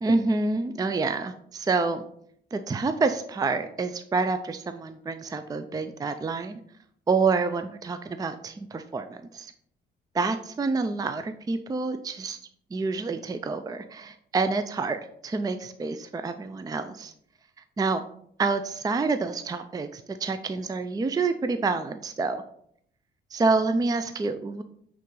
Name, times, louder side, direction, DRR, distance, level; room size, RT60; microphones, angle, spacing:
voice 1, 0.0-2.0 2.5-6.6 7.1-9.5 10.1-12.4 12.7-17.1 17.8-18.0 18.4-22.4 23.3-24.6, right 4 dB, 20° right, 9 dB, 0.4 m, -27 dB
8.3 x 3.7 x 3.9 m, 0.67 s
cardioid pair, 90°, 20 cm